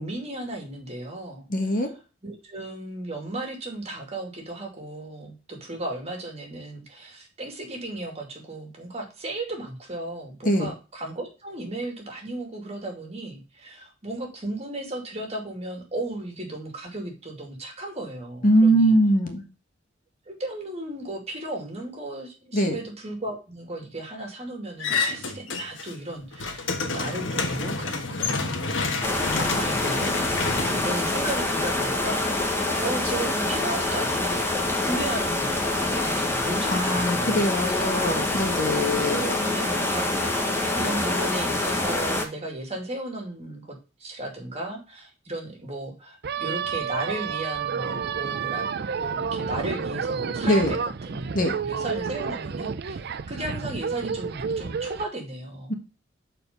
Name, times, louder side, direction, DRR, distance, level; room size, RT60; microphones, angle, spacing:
voice 1, 0.0-1.5 2.2-19.0 20.3-28.8 29.3-30.2 30.4-32.5 32.8-38.3 38.9-51.3 51.6-55.7, right 1 dB, 35° right, 2 dB, 2.5 m, -35 dB
voice 2, 1.5-1.9 10.4-10.7 18.4-19.4 22.5-22.7 36.7-39.4 50.5-50.7 51.3-51.6 55.7-55.8, equal, 45° left, 4 dB, 1.5 m, -22 dB
sound 1, 24.8-25.9 26.2-31.6, left 4 dB, 85° left, 1.4 m, -29 dB
sound 2, 29.0-42.3, left 2 dB, 15° left, 1.4 m, -26 dB
sound 3, 46.2-55.0, right 6 dB, 60° right, 0.5 m, -30 dB
7.0 x 4.4 x 5.4 m, 0.31 s
head